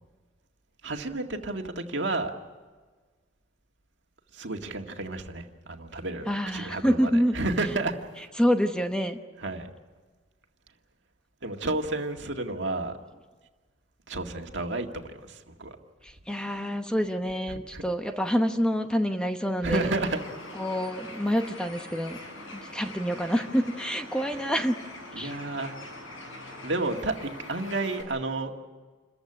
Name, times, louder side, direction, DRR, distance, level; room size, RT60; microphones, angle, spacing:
voice 1, 0.8-2.3 4.3-8.3 9.4-9.7 11.4-12.9 14.1-15.8 17.5-17.8 19.6-20.2 25.1-25.7 26.6-28.5, right 2 dB, 60° right, 4 dB, 2.0 m, -31 dB
voice 2, 6.3-7.3 8.4-9.2 16.0-19.9 20.6-22.2 22.5-24.8 25.2-25.3, equal, 5° left, 6 dB, 0.9 m, -27 dB
Bird, 19.7-28.0, left 1 dB, 85° left, 8.0 m, -43 dB
28.5 x 15.0 x 9.9 m, 1.4 s
head